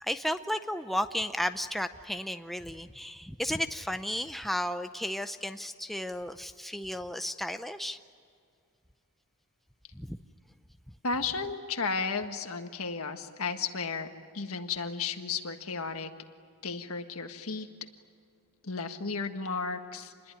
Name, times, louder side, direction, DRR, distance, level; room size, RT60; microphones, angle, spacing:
voice 1, 0.0-8.0 9.9-10.2, equal, ahead, 8 dB, 0.6 m, -33 dB
voice 2, 11.0-14.1 14.3-16.1 16.6-17.7 18.6-20.3, left 4 dB, 70° left, 7 dB, 1.7 m, -34 dB
28.0 x 21.0 x 9.9 m, 2.3 s
head